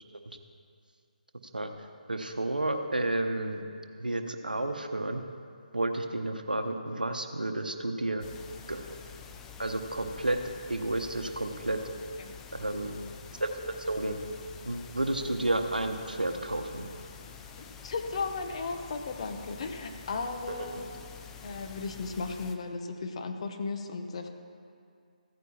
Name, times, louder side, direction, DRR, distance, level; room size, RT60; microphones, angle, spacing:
voice 1, 2.1-3.6 4.0-5.2 5.7-8.3 8.7-9.0 9.6-10.4 10.7-11.8 12.5-13.0 13.4-13.5 13.9-14.2 14.6-16.9 20.5-20.8, right 2 dB, 90° right, 6 dB, 0.9 m, -31 dB
sound 1, 8.2-22.6, left 7 dB, 10° left, 0.4 m, -47 dB
voice 2, 17.6-20.8 21.4-24.3, left 4 dB, 45° left, 6 dB, 0.9 m, -35 dB
15.5 x 9.1 x 2.9 m, 2.4 s
figure-of-eight pair, 150°, 5 cm